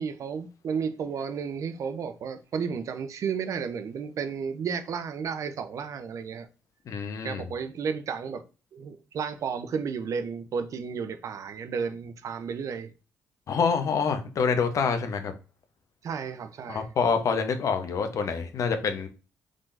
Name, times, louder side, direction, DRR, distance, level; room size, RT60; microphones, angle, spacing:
voice 1, 0.0-6.5 7.2-8.4 8.7-12.9 16.0-16.9, right 6 dB, 60° right, 0.6 m, -32 dB
voice 2, 6.9-7.4 13.5-15.3 16.7-19.1, left 5 dB, 60° left, 1.0 m, -26 dB
5.1 x 3.7 x 2.6 m
supercardioid pair, 60°, 6 cm